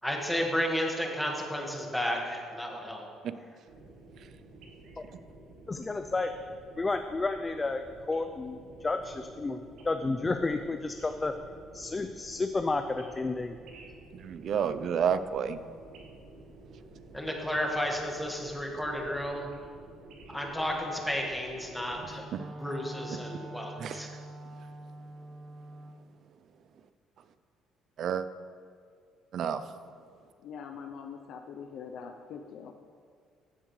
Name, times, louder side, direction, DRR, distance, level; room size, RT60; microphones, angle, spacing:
voice 1, 0.0-3.1 17.1-19.5 20.3-24.1, equal, 5° left, 0 dB, 1.7 m, -32 dB
sound 1, 3.7-22.2, right 2 dB, 80° right, 1.5 m, -51 dB
voice 2, 5.7-6.3 6.8-9.6 9.8-11.3 11.7-13.6, left 3 dB, 20° left, 7 dB, 0.4 m, -31 dB
voice 3, 14.1-15.6 23.8-24.0 28.0-28.2 29.3-29.6, right 7 dB, 60° right, 12 dB, 0.4 m, -29 dB
Wind instrument woodwind instrument, 21.9-26.0, right 2 dB, 35° right, 0.8 m, -44 dB
voice 4, 30.4-32.7, left 6 dB, 70° left, 5 dB, 0.6 m, -43 dB
15.0 x 7.3 x 3.2 m, 2.2 s
cardioid pair, 100°, 0 cm